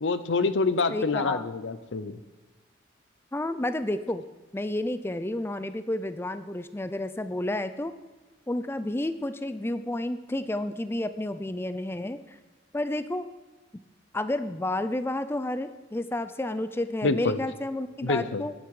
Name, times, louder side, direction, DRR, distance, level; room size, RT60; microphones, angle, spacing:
voice 1, 0.0-2.2 17.0-17.4 18.0-18.4, left 3 dB, 80° left, 14 dB, 0.7 m, -26 dB
voice 2, 0.9-1.4 3.3-4.2 4.5-7.9 8.5-12.4 12.7-13.3 14.1-18.5, left 1 dB, 15° left, 12 dB, 0.4 m, -31 dB
13.0 x 10.0 x 4.9 m, 1.2 s
head